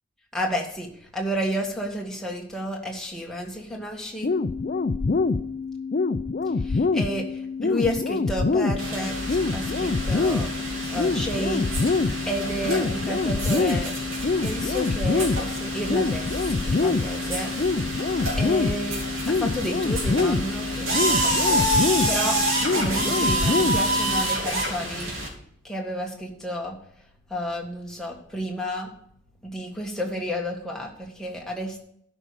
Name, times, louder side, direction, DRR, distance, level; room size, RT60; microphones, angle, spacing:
voice 1, 0.3-4.3 6.6-10.5 10.9-11.7 12.2-13.9 14.4-17.5 18.3-21.8 22.1-22.4 22.7-25.1 25.6-26.8 27.3-28.9 29.4-31.8, equal, ahead, -1 dB, 1.6 m, -31 dB
sound 1, 4.2-24.2, left 4 dB, 40° left, 0.4 m, -25 dB
sound 2, 8.8-25.3, right 1 dB, 85° right, 2.9 m, -28 dB
12.5 x 5.3 x 6.7 m, 0.70 s
head